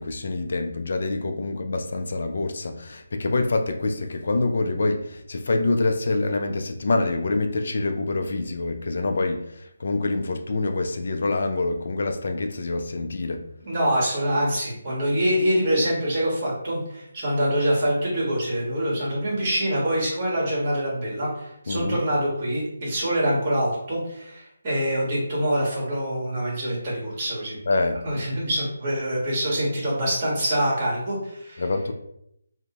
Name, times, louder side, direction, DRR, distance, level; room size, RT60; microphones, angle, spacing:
voice 1, 0.0-13.4 21.7-22.0 27.7-28.0 31.6-31.9, left 2 dB, 60° left, 5 dB, 0.3 m, -26 dB
voice 2, 13.6-27.6 28.0-31.6, equal, 35° right, -4 dB, 1.2 m, -25 dB
2.6 x 2.1 x 2.8 m, 0.76 s
figure-of-eight pair, 155°, 0 cm